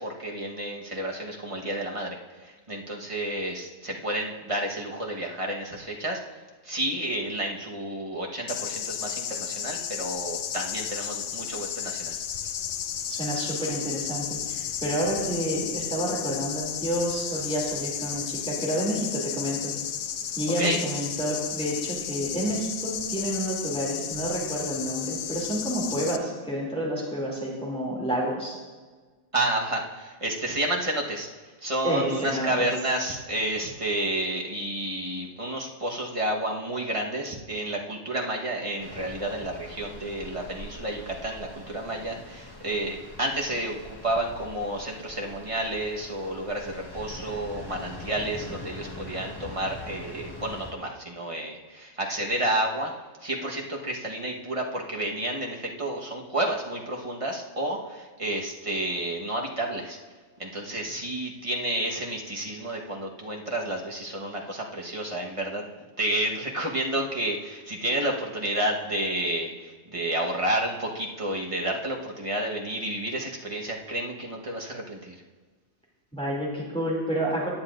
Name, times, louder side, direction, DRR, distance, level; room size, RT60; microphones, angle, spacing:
voice 1, 0.0-6.2 6.6-12.2 20.6-20.8 29.3-31.3 31.6-52.9 53.2-60.0 60.4-65.6 66.0-75.2, right 1 dB, 30° right, -1 dB, 1.3 m, -30 dB
sound 1, 8.5-26.2, left 9 dB, 80° left, 0.9 m, -33 dB
voice 2, 13.1-19.7 20.4-28.6 31.8-32.7 76.1-77.5, right 1 dB, 5° left, -4 dB, 2.6 m, -29 dB
sound 2, 38.8-50.7, left 1 dB, 20° left, 1.4 m, -43 dB
17.5 x 9.8 x 2.5 m, 1.4 s
omnidirectional pair, 1.2 m